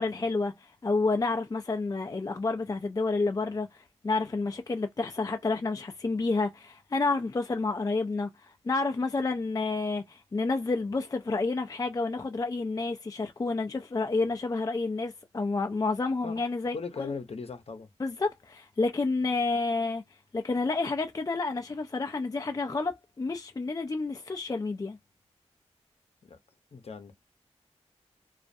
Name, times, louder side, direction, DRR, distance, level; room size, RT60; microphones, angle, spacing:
voice 1, 0.0-17.1 18.0-20.0 20.3-25.0, left 3 dB, 30° left, 0.4 m, -30 dB
voice 2, 16.7-17.9 26.2-26.4 26.7-27.1, left 4 dB, 60° left, 0.7 m, -38 dB
2.4 x 2.0 x 2.6 m
cardioid pair, 45°, 12 cm